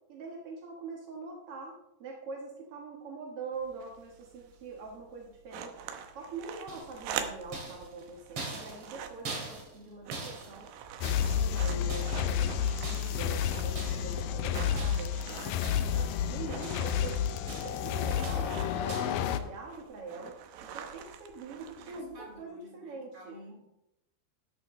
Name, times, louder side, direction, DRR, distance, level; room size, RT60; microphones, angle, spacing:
voice 1, 0.1-5.8 6.1-10.7 11.0-15.1 15.4-17.2 17.6-20.4 20.6-23.4, right 3 dB, 60° right, -1 dB, 1.5 m, -43 dB
sound 1, 3.5-22.4, right 8 dB, 85° right, 3.0 m, -45 dB
sound 2, 6.7-7.1 7.5-9.9 10.1-11.5 11.9-12.4 12.8-13.3 13.8-14.2 14.8-15.2 15.6-16.1 16.4-17.1 17.5-17.9 18.2-18.6 18.9-19.2, right 3 dB, 40° right, 2.8 m, -43 dB
sound 3, 11.0-19.4, left 8 dB, 90° left, 1.8 m, -30 dB
voice 2, 21.8-23.6, right 1 dB, 25° right, -3 dB, 4.3 m, -53 dB
13.0 x 12.0 x 3.2 m, 0.89 s
omnidirectional pair, 4.7 m